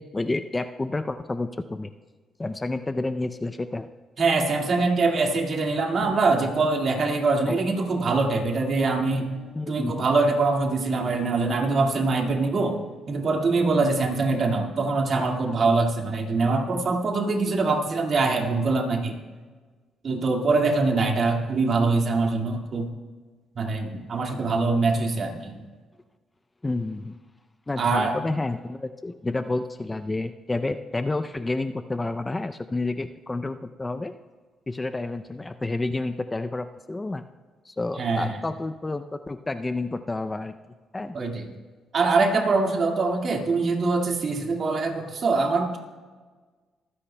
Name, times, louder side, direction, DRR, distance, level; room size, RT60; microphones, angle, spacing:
voice 1, 0.0-1.9 2.4-3.9 7.5-7.6 9.6-9.9 26.6-27.2 27.7-34.1 34.7-37.2 37.6-40.5 40.9-41.2, left 2 dB, 20° left, 9 dB, 0.5 m, -30 dB
voice 2, 4.2-9.3 9.7-12.8 13.1-19.2 20.0-22.9 23.6-25.6 27.8-28.2 38.0-38.4 41.1-41.5 41.9-45.8, right 3 dB, 50° right, 2 dB, 1.9 m, -23 dB
Electric guitar, 6.0-13.8, left 4 dB, 85° left, 1.8 m, -46 dB
25.0 x 9.9 x 2.2 m, 1.4 s
cardioid pair, 90°, 0 cm